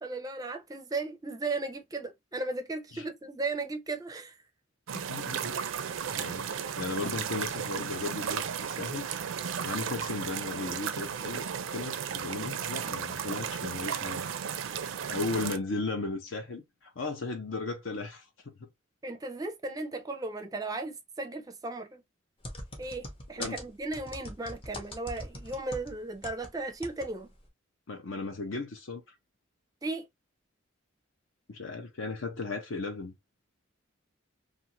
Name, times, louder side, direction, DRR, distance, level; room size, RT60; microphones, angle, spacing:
voice 1, 0.0-4.4 19.0-22.0 22.8-27.3 29.8-30.1, right 3 dB, 20° right, 0.5 m, -36 dB
voice 2, 4.9-5.5 6.1-9.1 9.6-11.5 11.7-14.3 15.1-18.7 23.4-23.6 27.9-29.0 31.5-33.1, left 3 dB, 70° left, 0.6 m, -36 dB
sound 1, 4.9-15.6, right 7 dB, 75° right, 0.4 m, -34 dB
sound 2, 22.4-26.5 26.8-27.1 27.3-27.4, left 1 dB, 25° left, 0.7 m, -41 dB
2.5 x 2.4 x 2.8 m
head